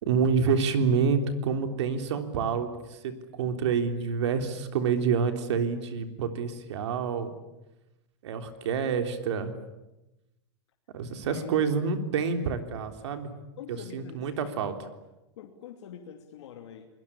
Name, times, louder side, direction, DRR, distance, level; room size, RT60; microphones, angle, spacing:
voice 1, 0.0-7.3 8.2-9.5 10.9-13.4 13.7-14.7, right 6 dB, 85° right, 7 dB, 3.5 m, -28 dB
voice 2, 13.6-14.5 15.4-16.9, left 9 dB, 90° left, 3 dB, 2.9 m, -44 dB
29.5 x 21.0 x 8.7 m, 0.96 s
supercardioid pair, 160°, 14 cm